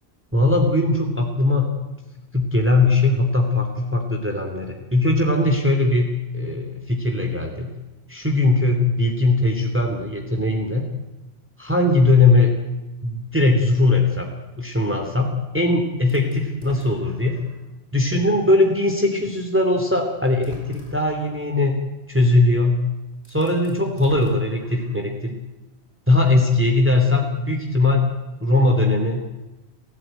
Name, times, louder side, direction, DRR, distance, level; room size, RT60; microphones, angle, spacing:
voice 1, 0.3-1.7 2.3-7.7 8.1-10.9 11.6-12.5 13.0-14.3 14.6-17.4 17.9-21.8 22.1-22.8 23.3-25.4 26.1-28.1 28.4-29.2, left 2 dB, 10° right, 3 dB, 2.8 m, -20 dB
sound 1, 16.1-17.7 18.3-18.4 19.6-19.7 20.3-21.2 22.7-22.8 23.2-25.1, left 2 dB, 85° right, 6.0 m, -44 dB
29.5 x 16.5 x 9.1 m, 1.0 s
omnidirectional pair, 1.1 m